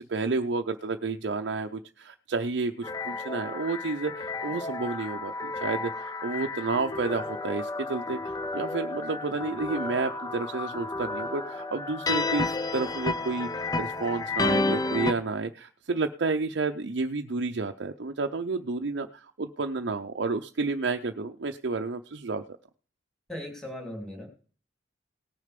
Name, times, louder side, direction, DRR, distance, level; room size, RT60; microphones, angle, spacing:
voice 1, 0.0-22.4, right 3 dB, 65° right, 4 dB, 0.6 m, -31 dB
sound 1, 2.8-15.1, left 3 dB, 20° left, 0.5 m, -32 dB
voice 2, 23.3-24.3, left 1 dB, 5° left, 2 dB, 3.0 m, -38 dB
18.0 x 6.5 x 5.2 m, 0.41 s
head